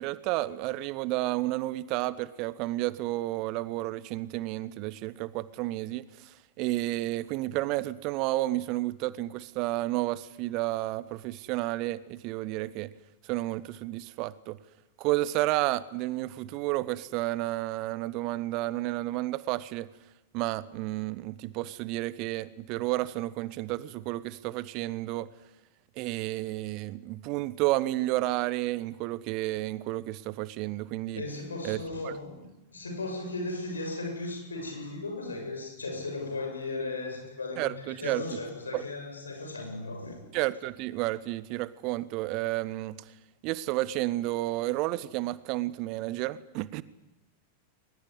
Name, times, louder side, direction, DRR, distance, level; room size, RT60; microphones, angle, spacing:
voice 1, 0.0-12.9 13.2-14.6 15.0-19.9 20.3-25.3 25.9-31.2 31.6-32.2 37.6-38.4 38.7-38.8 40.3-43.2 43.4-46.8, right 17 dB, 40° right, 1.0 m, -31 dB
voice 2, 31.2-40.2, left 2 dB, 75° left, 7.4 m, -36 dB
22.0 x 20.5 x 9.8 m
figure-of-eight pair, 90°, 0 cm